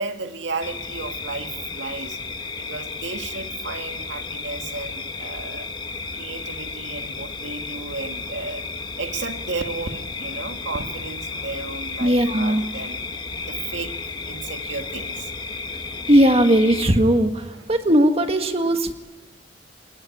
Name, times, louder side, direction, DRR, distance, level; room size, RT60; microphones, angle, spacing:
voice 1, 0.0-2.2 2.6-5.7 6.1-8.6 9.0-13.0 13.4-13.9 14.3-15.3 17.5-17.7 18.6-18.8, right 3 dB, 70° right, 6 dB, 2.0 m, -33 dB
sound 1, 0.6-16.9, left 4 dB, 25° left, 1.2 m, -33 dB
voice 2, 12.0-12.6 16.1-18.9, right 1 dB, 30° right, 6 dB, 1.7 m, -18 dB
28.5 x 20.5 x 9.9 m, 1.2 s
head